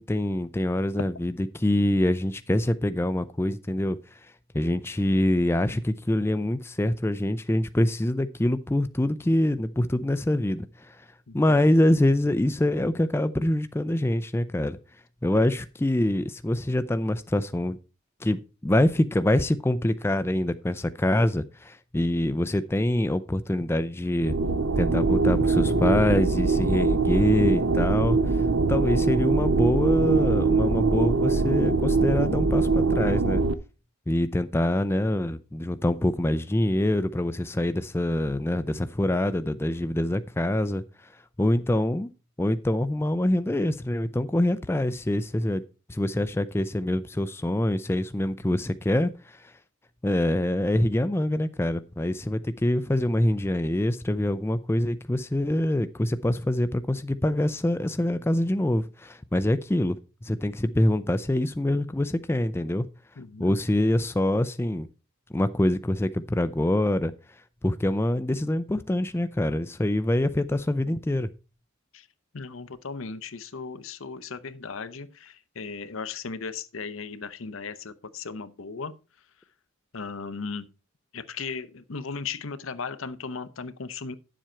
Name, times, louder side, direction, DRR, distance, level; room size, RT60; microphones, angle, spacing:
voice 1, 0.0-4.2 4.5-11.0 11.3-14.8 15.2-17.8 18.2-24.3 24.8-28.4 28.7-33.4 34.1-40.8 41.4-42.1 42.4-45.6 45.9-49.5 50.0-60.0 60.2-62.9 63.4-64.9 65.3-67.1 67.6-71.3, left 1 dB, 10° left, 0.4 m, -25 dB
voice 2, 11.3-11.6 63.2-63.5 71.9-72.0 72.3-78.9 79.9-80.7 81.1-84.2, left 5 dB, 75° left, 0.8 m, -36 dB
sound 1, 24.2-33.5, right 3 dB, 75° right, 0.7 m, -23 dB
10.0 x 7.5 x 4.4 m
head